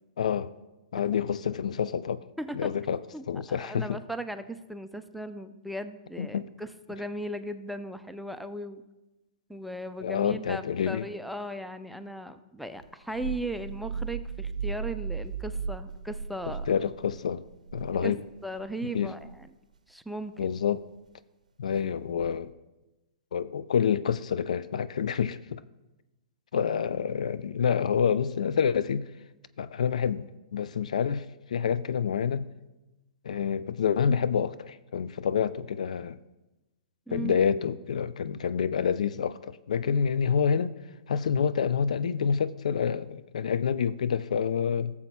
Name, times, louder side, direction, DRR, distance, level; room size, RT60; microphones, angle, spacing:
voice 1, 0.2-0.5 0.9-2.2 2.5-3.0 3.3-4.0 6.2-6.5 10.0-11.1 16.7-17.4 17.7-18.2 18.9-19.1 20.4-20.8 21.6-22.5 23.3-25.6 26.5-29.1 29.6-32.5 33.2-36.2 37.1-40.7 41.1-44.9, left 7 dB, 65° left, 0.3 m, -28 dB
voice 2, 3.1-8.8 9.5-16.7 18.0-18.1 18.4-19.5 19.9-20.5 37.1-37.4, right 1 dB, ahead, 0.4 m, -37 dB
sound 1, 12.8-18.7 19.1-19.4 20.6-20.9 22.1-22.5, right 6 dB, 75° right, 0.6 m, -37 dB
16.5 x 7.1 x 2.2 m
figure-of-eight pair, 115°, 4 cm